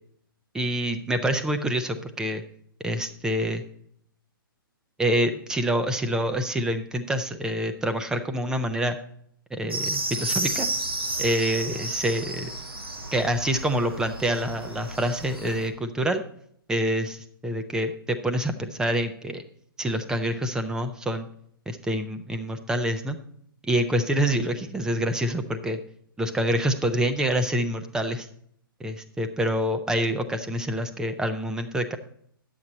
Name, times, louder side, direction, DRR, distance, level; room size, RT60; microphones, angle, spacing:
voice 1, 0.5-2.4 2.8-3.6 5.0-9.0 9.5-10.7 11.2-12.5 13.1-16.2 16.7-19.4 19.8-21.3 21.7-23.2 23.6-25.8 26.2-28.3 28.8-32.0, right 1 dB, 5° right, 7 dB, 0.7 m, -26 dB
sound 1, 9.7-15.7, right 2 dB, 85° right, 1.5 m, -32 dB
10.5 x 7.7 x 4.0 m, 0.65 s
figure-of-eight pair, 125°, 12 cm